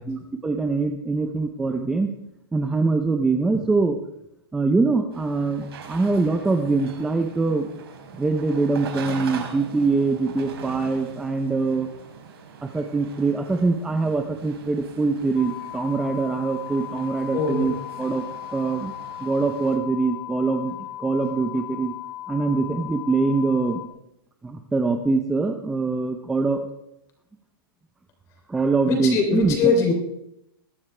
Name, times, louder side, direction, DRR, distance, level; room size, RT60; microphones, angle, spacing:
voice 1, 0.1-2.1 2.5-4.0 4.5-7.7 8.2-11.9 12.6-18.2 18.5-18.9 19.2-21.9 22.3-23.8 24.4-26.6 28.5-29.7, right 3 dB, 5° right, 5 dB, 0.5 m, -23 dB
sound 1, 5.1-19.8, right 6 dB, 85° right, 4.2 m, -42 dB
sound 2, 15.4-23.9, left 14 dB, 50° left, 1.0 m, -37 dB
voice 2, 17.3-17.7 28.9-29.9, left 4 dB, 25° left, 3 dB, 3.2 m, -21 dB
21.5 x 11.5 x 3.3 m, 0.80 s
hypercardioid pair, 170°, 13 cm